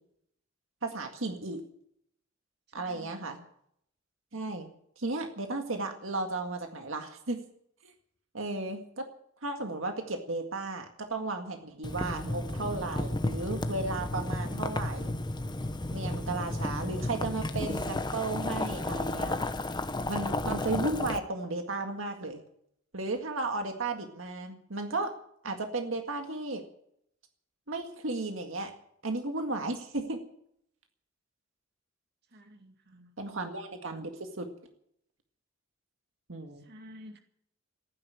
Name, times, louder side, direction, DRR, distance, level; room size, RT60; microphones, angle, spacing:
voice 1, 0.8-1.6 2.7-3.4 4.3-4.7 5.0-7.4 7.8-7.9 8.3-9.1 9.4-15.1 15.9-19.4 20.1-22.4 22.9-25.1 25.4-26.6 27.7-28.7 29.0-30.2 33.2-34.5 36.3-36.6, right 2 dB, 70° right, 5 dB, 2.0 m, -34 dB
voice 2, 2.8-3.5 32.3-33.1 36.6-37.2, equal, 55° right, 5 dB, 2.2 m, -51 dB
Boiling, 11.8-21.2, left 2 dB, 20° left, 0.9 m, -33 dB
15.5 x 9.9 x 9.4 m, 0.69 s
head